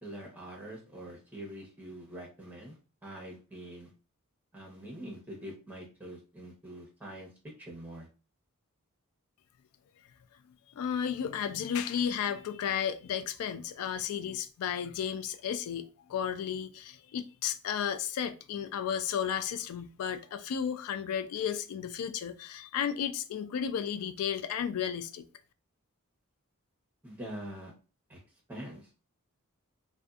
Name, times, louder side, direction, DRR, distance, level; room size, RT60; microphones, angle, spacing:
voice 1, 0.0-3.9 4.5-7.3 7.6-8.1 27.0-27.7 28.1-28.2 28.5-28.9, right 1 dB, 10° right, 0.9 m, -44 dB
voice 2, 10.7-25.3, left 8 dB, 80° left, 0.3 m, -33 dB
2.5 x 2.2 x 2.3 m
head